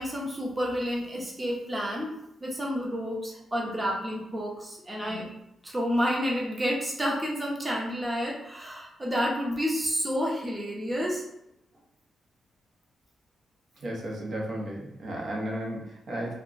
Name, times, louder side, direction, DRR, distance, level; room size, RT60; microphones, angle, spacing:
voice 1, 0.0-2.1 2.4-5.2 5.6-11.2, equal, 20° right, -3 dB, 0.9 m, -30 dB
voice 2, 13.8-16.3, right 1 dB, 55° right, -2 dB, 0.9 m, -34 dB
2.3 x 2.3 x 3.9 m, 0.81 s
cardioid pair, 105°, 0 cm